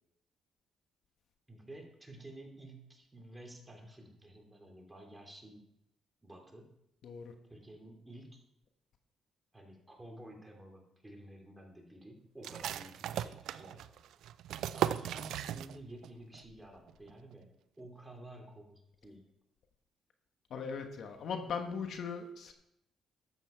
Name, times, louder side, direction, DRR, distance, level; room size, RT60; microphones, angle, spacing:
voice 1, 1.5-5.6 6.2-6.7 7.5-8.4 9.5-13.8 14.7-19.2, right 1 dB, 10° right, 1 dB, 3.0 m, -52 dB
voice 2, 7.0-7.3 20.5-22.5, left 6 dB, 65° left, 5 dB, 1.3 m, -39 dB
sound 1, 12.4-16.1 16.3-16.4 16.9-17.3, right 10 dB, 80° right, 0.4 m, -37 dB
12.5 x 8.1 x 4.5 m, 0.81 s
cardioid pair, 90°, 0 cm